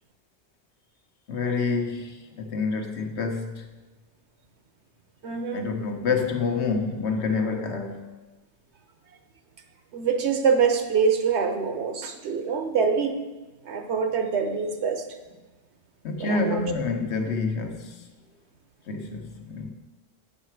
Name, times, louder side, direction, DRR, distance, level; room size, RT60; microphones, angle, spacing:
voice 1, 1.3-3.7 5.5-8.1 16.0-18.0 18.9-19.7, left 4 dB, 80° left, 4 dB, 1.1 m, -28 dB
voice 2, 5.2-5.7 9.9-13.1 13.7-15.0 16.2-16.6, right 6 dB, 80° right, 5 dB, 1.1 m, -25 dB
8.5 x 5.7 x 4.6 m, 1.2 s
omnidirectional pair, 1.1 m